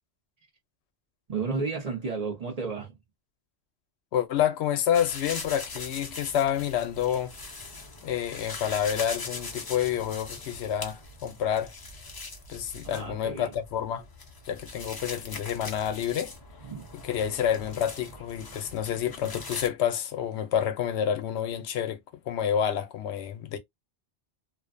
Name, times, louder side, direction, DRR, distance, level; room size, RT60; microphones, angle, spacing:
voice 1, 1.3-2.9 12.9-13.5 16.6-16.8, right 4 dB, 40° right, 0.8 m, -32 dB
voice 2, 4.1-7.3 8.0-11.7 12.5-14.1 14.5-16.3 16.9-22.0 22.3-23.6, left 9 dB, 80° left, 0.8 m, -28 dB
sound 1, 4.9-19.7, left 3 dB, 30° left, 0.4 m, -41 dB
2.5 x 2.2 x 2.4 m
omnidirectional pair, 1.1 m